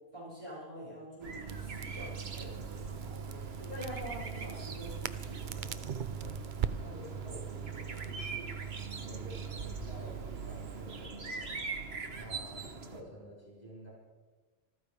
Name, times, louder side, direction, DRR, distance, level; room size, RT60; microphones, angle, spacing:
voice 1, 0.1-3.1 3.6-5.8 11.1-11.3, equal, 30° right, -7 dB, 7.5 m, -46 dB
sound 1, 1.2-13.0, right 4 dB, 80° right, 1.6 m, -43 dB
Crackle, 1.5-11.1, right 8 dB, 55° right, 0.7 m, -41 dB
voice 2, 6.7-8.6 9.0-11.5 11.8-13.9, equal, 40° left, -6 dB, 6.2 m, -50 dB
27.0 x 14.0 x 3.6 m, 1.3 s
omnidirectional pair, 1.0 m